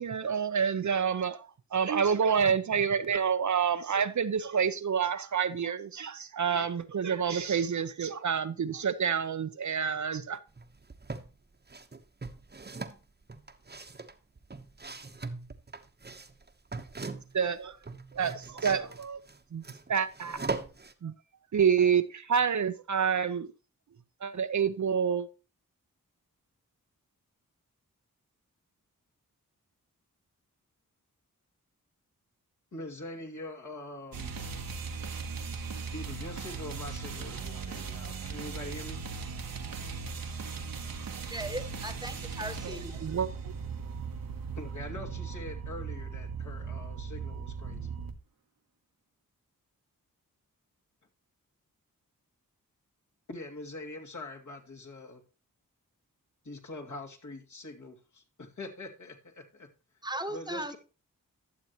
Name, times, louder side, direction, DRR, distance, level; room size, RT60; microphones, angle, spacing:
voice 1, 0.0-10.4 17.3-17.8 18.1-19.2 19.5-19.6 19.9-20.4 21.0-21.1 21.5-23.5 24.2-25.3 42.6-43.3, right 7 dB, 55° right, 0.7 m, -28 dB
sound 1, 10.6-11.3 11.7-17.5 17.7-20.9, right 3 dB, 30° right, 1.0 m, -40 dB
voice 2, 32.7-34.4 35.9-39.0 44.6-47.9 53.3-55.2 56.4-59.7 60.3-60.8, left 2 dB, 55° left, 2.2 m, -43 dB
sound 2, 34.1-48.2, right 5 dB, 75° right, 1.1 m, -38 dB
voice 3, 41.3-43.0 60.0-60.8, right 1 dB, 10° right, 1.3 m, -37 dB
12.0 x 6.8 x 3.0 m
cardioid pair, 40°, 35 cm